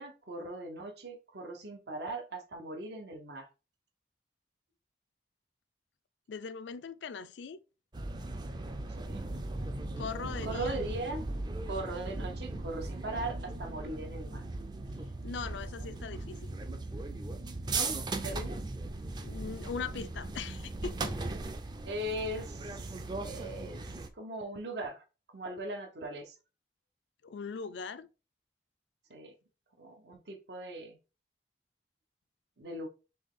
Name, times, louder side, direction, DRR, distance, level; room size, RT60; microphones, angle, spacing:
voice 1, 0.0-3.5 9.0-9.2 10.4-11.2 11.7-14.5 17.7-18.6 21.8-23.8 24.1-25.1 25.3-26.3 29.1-29.3 29.8-31.0 32.6-32.9, right 1 dB, 70° right, 0.8 m, -39 dB
voice 2, 6.3-7.6 10.0-10.7 15.2-16.6 19.2-21.1 27.2-28.1, left 5 dB, 85° left, 0.4 m, -40 dB
sound 1, 7.9-24.1, right 2 dB, 25° right, 0.4 m, -38 dB
4.2 x 3.2 x 3.6 m
head